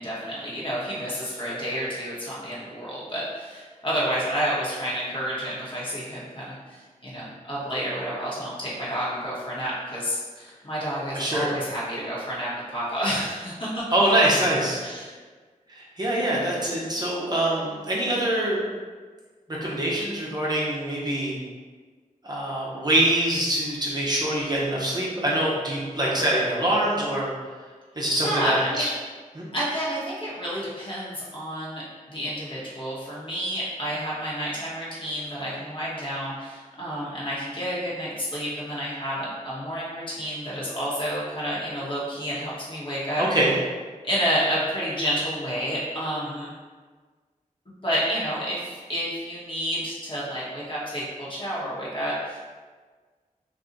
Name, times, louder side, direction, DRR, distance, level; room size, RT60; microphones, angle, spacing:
voice 1, 0.0-13.8 14.8-15.1 26.0-26.2 28.2-28.9 29.5-43.2 44.0-46.5 47.8-52.4, equal, 35° left, -7 dB, 1.2 m, -30 dB
voice 2, 11.1-11.5 13.9-14.8 15.7-18.6 19.6-21.4 22.2-27.3 28.0-28.8 29.3-29.4 43.2-43.5, right 1 dB, 30° right, -6 dB, 0.8 m, -24 dB
2.6 x 2.3 x 3.9 m, 1.5 s
cardioid pair, 60°, 14 cm